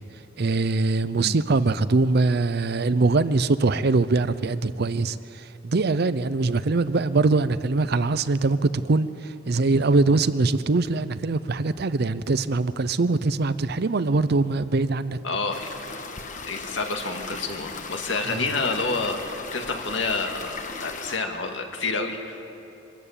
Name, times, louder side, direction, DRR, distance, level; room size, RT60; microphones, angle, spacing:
voice 1, 0.4-5.2 5.6-9.1 9.5-15.2 18.3-18.4, right 3 dB, 55° right, 15 dB, 0.6 m, -22 dB
voice 2, 15.2-15.7 16.5-22.5, left 3 dB, 70° left, 4 dB, 2.0 m, -29 dB
sound 1, 15.5-21.2, left 4 dB, 40° left, 1.3 m, -37 dB
23.0 x 13.5 x 8.8 m, 2.8 s
head